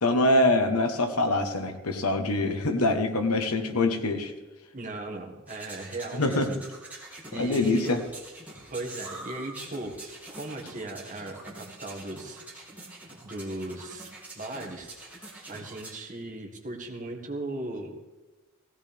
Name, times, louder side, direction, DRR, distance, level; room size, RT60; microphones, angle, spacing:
voice 1, 0.0-4.3 6.2-6.5 7.3-8.0, left 2 dB, 85° left, 6 dB, 1.3 m, -24 dB
voice 2, 4.7-6.6 7.3-8.0 8.7-12.6 13.2-15.2 15.5-17.9, right 2 dB, 35° right, 2 dB, 1.8 m, -38 dB
sound 1, 5.5-16.0, right 2 dB, 10° right, 2.7 m, -45 dB
17.0 x 16.0 x 3.5 m, 1.1 s
head